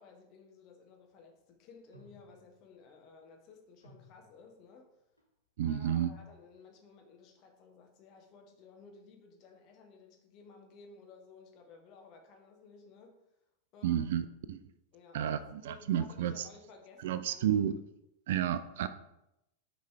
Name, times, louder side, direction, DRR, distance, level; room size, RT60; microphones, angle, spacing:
voice 1, 0.0-4.9 5.6-13.2 13.7-14.1 14.9-17.6, left 4 dB, 40° left, 2 dB, 1.3 m, -56 dB
sound 1, 1.9-2.6 3.6-4.5 5.2-5.3 5.6-6.6, left 1 dB, 90° right, 1.0 m, -59 dB
voice 2, 5.6-6.1 13.8-14.6 15.1-16.5 17.0-17.8 18.3-18.9, right 10 dB, 55° right, 12 dB, 0.3 m, -31 dB
6.3 x 5.0 x 3.4 m, 0.86 s
figure-of-eight pair, 90°, 0 cm